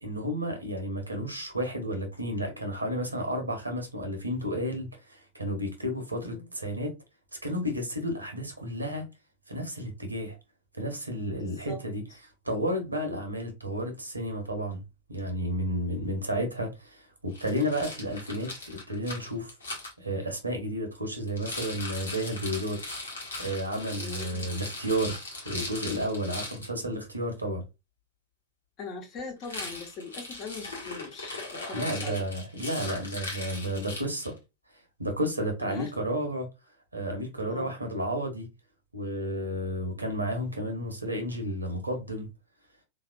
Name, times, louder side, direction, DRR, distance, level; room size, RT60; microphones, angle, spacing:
voice 1, 0.0-6.9 7.4-9.1 9.5-10.4 10.7-12.0 12.4-14.8 15.1-19.5 20.0-23.1 23.4-27.6 31.7-34.4 35.0-36.5 36.9-38.5 38.9-42.3, equal, 85° right, 1.0 m, -32 dB
voice 2, 6.2-6.5 11.3-11.8 23.9-24.5 28.8-32.2 35.6-35.9 37.4-37.7, left 3 dB, 35° left, 1.1 m, -41 dB
Rattle, 17.3-19.9 21.3-26.7 29.4-34.4, left 2 dB, 75° left, 1.2 m, -39 dB
3.6 x 2.8 x 2.4 m
figure-of-eight pair, 90°, 0 cm